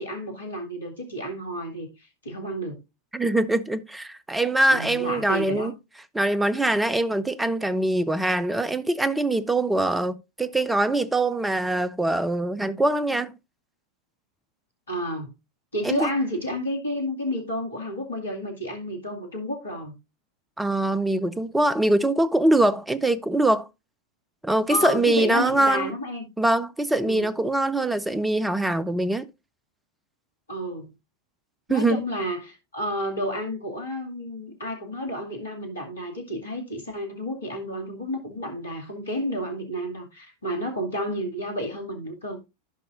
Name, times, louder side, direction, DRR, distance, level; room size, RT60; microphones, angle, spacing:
voice 1, 0.0-1.9 2.2-2.8 4.7-5.7 14.9-15.3 15.7-19.9 24.7-26.2 27.0-27.3 30.5-30.9 31.7-42.4, equal, 75° left, 2.4 m, -31 dB
voice 2, 3.1-5.8 6.1-13.3 15.8-16.1 20.6-23.7 24.4-25.9 26.4-29.3 31.7-32.0, right 1 dB, 5° right, 0.6 m, -23 dB
14.5 x 5.4 x 2.6 m
figure-of-eight pair, 90°, 0 cm